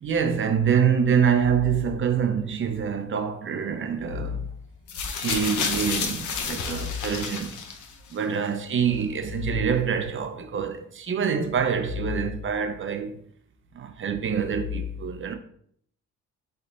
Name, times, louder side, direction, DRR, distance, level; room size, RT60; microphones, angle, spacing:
voice 1, 0.0-4.5 5.2-7.5 8.1-13.2 13.7-15.3, right 6 dB, 40° right, 0.6 m, -25 dB
sound 1, 4.9-8.1 9.0-9.1, left 6 dB, 75° left, 0.8 m, -30 dB
4.2 x 3.2 x 3.9 m
cardioid pair, 90°, 30 cm